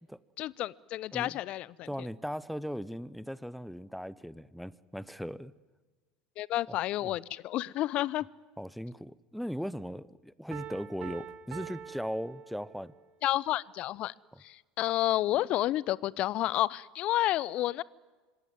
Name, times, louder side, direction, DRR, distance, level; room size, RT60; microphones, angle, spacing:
voice 1, 0.4-2.1 6.4-8.3 13.2-14.1 14.4-17.8, left 15 dB, 45° left, 23 dB, 0.7 m, -30 dB
voice 2, 1.8-5.5 6.7-6.8 7.0-7.2 8.6-12.9 14.3-14.4, equal, ahead, 20 dB, 0.9 m, -38 dB
Piano, 10.5-13.1, right 10 dB, 45° right, 2.3 m, -45 dB
26.0 x 20.5 x 9.6 m, 1.3 s
figure-of-eight pair, 75°, 3 cm